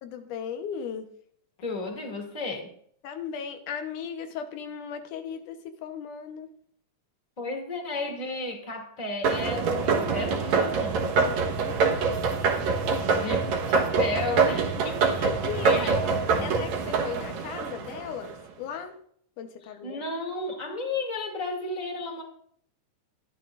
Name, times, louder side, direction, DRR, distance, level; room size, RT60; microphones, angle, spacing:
voice 1, 0.0-1.1 3.0-6.5 11.2-11.8 15.2-19.0 19.4-20.0, left 7 dB, 90° left, 6 dB, 2.6 m, -37 dB
voice 2, 1.6-2.7 7.4-10.9 13.1-15.3 15.6-16.5 16.8-16.9 19.8-22.2, left 2 dB, 15° left, 2 dB, 2.2 m, -33 dB
sound 1, 9.2-18.3, right 5 dB, 70° right, 2.5 m, -25 dB
20.5 x 12.5 x 2.5 m, 0.65 s
omnidirectional pair, 3.5 m